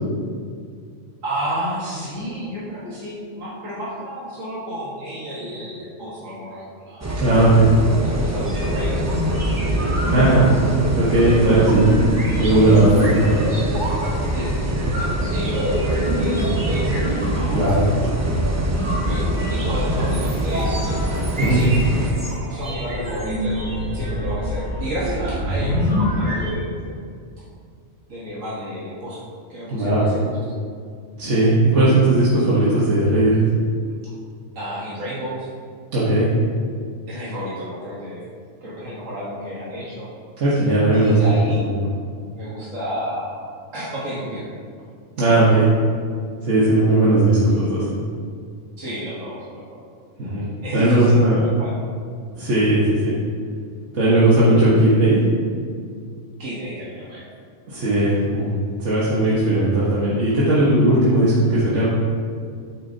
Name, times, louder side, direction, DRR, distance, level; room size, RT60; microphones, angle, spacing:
voice 1, 1.2-7.2 8.0-10.7 12.9-13.1 14.3-17.6 19.0-21.0 21.5-21.8 22.2-23.7 23.9-27.0 28.1-29.2 29.5-30.6 34.0-34.1 34.5-35.5 37.1-38.2 38.6-40.1 40.9-41.6 42.3-43.5 43.7-44.5 48.8-49.8 50.6-51.7 56.4-57.2, equal, 85° right, -7 dB, 1.8 m, -31 dB
sound 1, 7.0-22.1, right 1 dB, 20° right, 0.4 m, -24 dB
voice 2, 7.2-7.7 10.1-10.5 11.0-11.9 12.3-13.3 17.5-17.8 21.4-21.6 29.7-30.0 31.2-33.4 35.9-36.3 40.4-41.3 41.6-41.7 45.2-45.7 46.4-47.9 50.2-50.4 50.7-51.4 52.3-53.1 53.9-55.2 57.7-58.5 58.8-61.9, right 1 dB, 65° right, -9 dB, 1.7 m, -17 dB
sound 2, 8.4-26.5, equal, 40° right, 1.6 m, -27 dB
8.9 x 8.9 x 2.8 m, 2.1 s
omnidirectional pair, 1.3 m